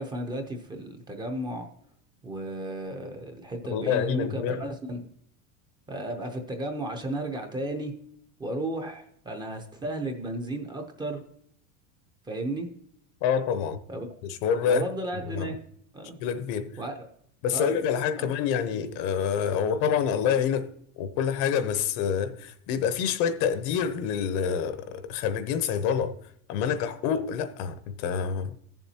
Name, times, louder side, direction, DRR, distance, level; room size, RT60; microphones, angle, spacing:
voice 1, 0.0-1.7 2.2-5.1 5.9-7.9 8.4-11.2 12.3-12.7 13.9-14.1 14.7-15.6 15.9-16.2 16.8-17.1 17.5-17.8 18.2-18.3, right 1 dB, 10° right, 0.6 m, -34 dB
voice 2, 3.7-4.6 13.2-13.8 14.2-14.8 15.4-15.6 16.2-16.8 17.4-20.7 21.0-26.1 26.5-28.5, left 7 dB, 55° left, 0.8 m, -27 dB
15.5 x 7.2 x 2.8 m
cardioid pair, 160°, 36 cm